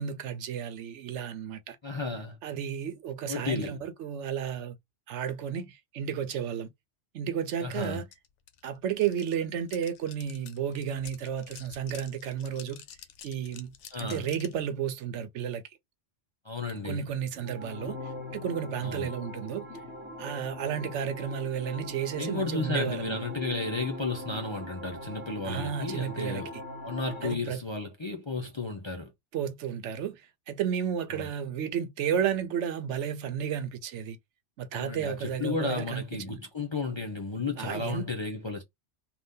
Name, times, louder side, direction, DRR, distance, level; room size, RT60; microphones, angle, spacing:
voice 1, 0.0-1.8 2.4-4.8 5.1-6.7 7.1-8.0 8.6-12.8 13.2-15.6 16.8-19.7 20.2-23.2 25.4-26.4 27.2-27.6 29.3-34.2 34.6-36.4 37.6-38.1, right 8 dB, 85° right, 0.9 m, -32 dB
voice 2, 1.8-2.4 3.3-3.8 7.6-8.0 13.9-14.3 16.4-17.0 18.8-19.1 22.2-26.5 26.8-29.1 31.1-31.3 34.7-38.6, left 3 dB, 35° left, 0.4 m, -33 dB
sound 1, 7.8-7.9 8.1-14.6, left 9 dB, 85° left, 0.9 m, -49 dB
sound 2, 17.3-27.3, left 1 dB, 10° right, 1.2 m, -41 dB
2.7 x 2.5 x 3.5 m
omnidirectional pair, 1.2 m